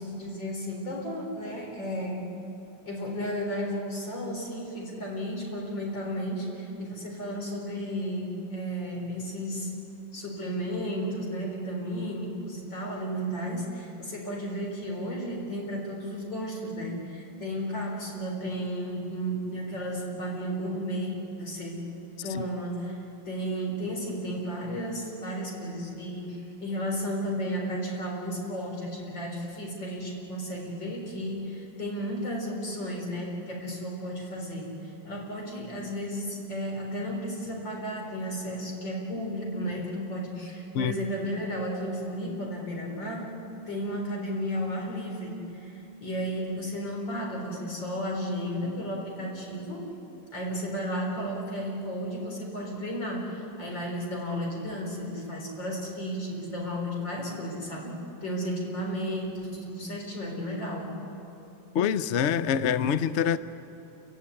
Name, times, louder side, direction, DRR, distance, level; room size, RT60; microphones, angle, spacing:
voice 1, 0.0-2.3 2.8-9.8 10.1-21.8 22.2-23.0 23.2-43.3 43.7-49.9 50.3-60.9, equal, 80° left, 0 dB, 4.9 m, -33 dB
voice 2, 61.7-63.4, left 8 dB, 60° left, 14 dB, 0.7 m, -25 dB
28.0 x 16.5 x 9.8 m, 2.9 s
omnidirectional pair, 2.0 m